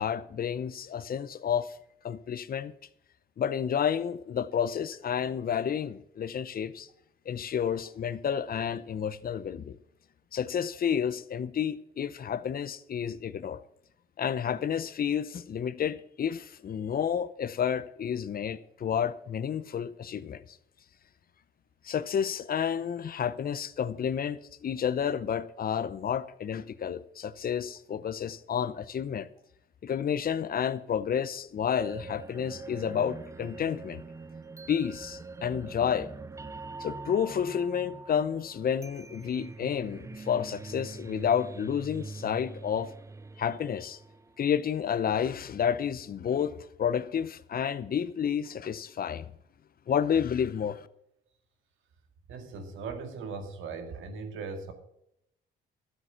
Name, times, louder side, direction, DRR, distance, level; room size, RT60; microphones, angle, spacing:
voice 1, 0.0-1.8 2.0-2.7 3.4-6.9 7.3-9.8 10.3-13.6 14.2-20.6 21.8-29.3 29.8-34.0 34.7-36.1 36.8-42.9 43.4-44.0 44.4-49.3 49.9-50.9, left 8 dB, 50° left, 0.8 m, -30 dB
sound 1, 31.7-44.7, right 3 dB, 15° right, 0.4 m, -44 dB
voice 2, 52.3-54.7, right 4 dB, 90° right, 2.1 m, -39 dB
13.0 x 8.0 x 5.8 m
cardioid pair, 90°, 20 cm